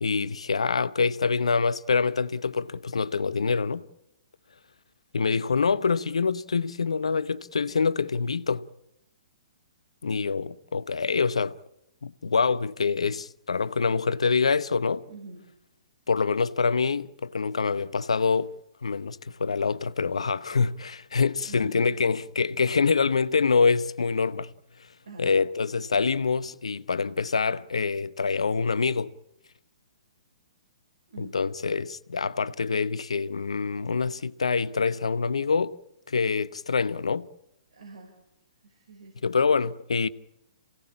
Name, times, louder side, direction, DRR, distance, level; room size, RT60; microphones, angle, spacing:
voice 1, 0.0-3.8 5.1-8.7 10.0-11.5 12.0-15.0 16.1-18.5 18.8-24.5 25.2-29.1 31.2-35.7 36.1-37.3 39.2-40.1, left 5 dB, 75° left, 0.9 m, -25 dB
voice 2, 15.1-15.4 21.5-22.0 25.0-25.3 31.1-31.3 37.7-38.2 38.6-39.2, right 3 dB, 70° right, 5.5 m, -45 dB
28.0 x 17.5 x 8.6 m
figure-of-eight pair, 120°, 3 cm